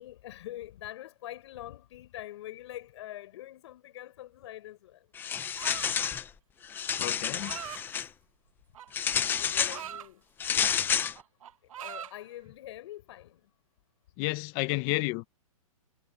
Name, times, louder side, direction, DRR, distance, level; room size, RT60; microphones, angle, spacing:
voice 1, 0.0-5.0 9.4-10.2 11.8-13.4, left 14 dB, 50° left, 6.7 m, -44 dB
sound 1, 5.2-6.3 6.6-8.1 8.9-9.8 10.4-11.1, left 8 dB, 10° left, 0.7 m, -29 dB
sound 2, 5.6-6.1 7.1-7.8 8.7-10.1 10.6-10.8 11.1-12.2, right 10 dB, 65° right, 1.3 m, -42 dB
voice 2, 7.0-7.5 14.2-15.3, left 22 dB, 30° left, 1.0 m, -31 dB
hypercardioid pair, 155°, 18 cm